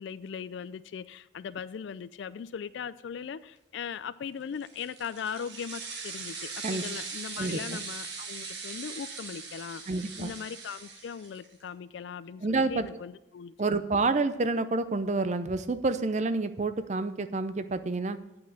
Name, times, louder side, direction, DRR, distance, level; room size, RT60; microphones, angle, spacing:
voice 1, 0.0-13.5, left 7 dB, 65° left, 0.3 m, -39 dB
sound 1, 4.6-11.5, right 4 dB, 60° right, 1.7 m, -40 dB
voice 2, 7.4-7.8 9.9-10.3 12.4-12.9 13.6-18.2, right 3 dB, 35° right, 0.5 m, -28 dB
8.6 x 5.8 x 7.7 m
head